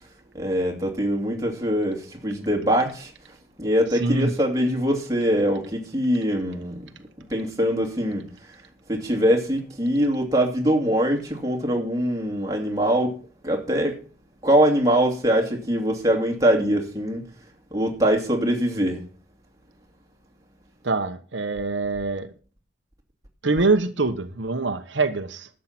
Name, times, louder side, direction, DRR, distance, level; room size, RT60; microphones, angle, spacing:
voice 1, 0.3-3.1 3.6-6.9 7.3-8.3 8.9-13.2 13.4-14.0 14.4-17.2 17.7-19.0, equal, 20° right, 2.5 m, -23 dB
voice 2, 4.0-4.3 20.8-22.3 23.4-25.5, right 3 dB, 75° right, 1.1 m, -24 dB
12.0 x 7.6 x 5.9 m
head